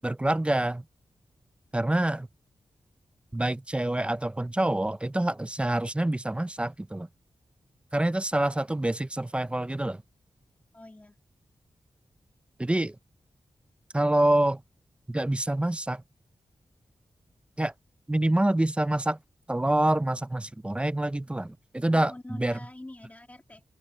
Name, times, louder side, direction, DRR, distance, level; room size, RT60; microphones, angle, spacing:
voice 1, 0.0-0.8 1.7-2.3 3.3-7.1 7.9-10.0 12.6-13.0 13.9-14.6 15.1-16.0 17.6-17.7 18.1-19.2 19.5-22.5, right 1 dB, 10° right, 0.5 m, -26 dB
voice 2, 10.7-11.2 21.9-23.6, left 1 dB, 15° left, 2.0 m, -45 dB
wide cardioid pair, 130°, 10 cm